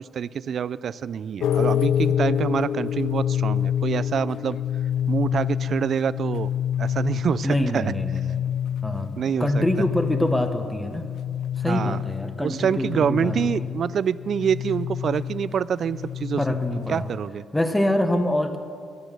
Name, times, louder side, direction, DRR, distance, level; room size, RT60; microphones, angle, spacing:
voice 1, 0.1-4.6 5.1-6.5 6.8-7.8 9.2-9.6 11.7-12.0 12.4-16.4 16.9-17.4, right 7 dB, 55° right, 18 dB, 0.3 m, -26 dB
sound 1, 1.4-17.3, left 9 dB, 75° left, 0.3 m, -27 dB
voice 2, 7.4-8.4 8.8-11.1 11.6-13.7 16.4-17.1 17.5-18.6, left 1 dB, 5° left, 7 dB, 1.0 m, -25 dB
12.0 x 11.5 x 6.8 m, 2.3 s
cardioid pair, 90°, 0 cm